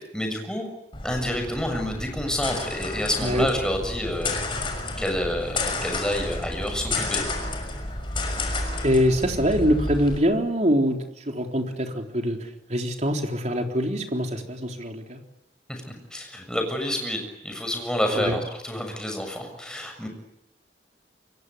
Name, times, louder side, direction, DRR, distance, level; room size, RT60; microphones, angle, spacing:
voice 1, 0.1-0.7 1.0-4.3 5.0-7.2 15.7-15.8 16.1-20.1, left 1 dB, 5° left, 3 dB, 6.9 m, -28 dB
sound 1, 0.9-10.2, left 2 dB, 30° left, 6.1 m, -31 dB
voice 2, 8.8-11.0 11.3-15.2 18.2-18.4, equal, 40° right, 3 dB, 3.8 m, -24 dB
27.0 x 23.0 x 9.7 m, 0.84 s
head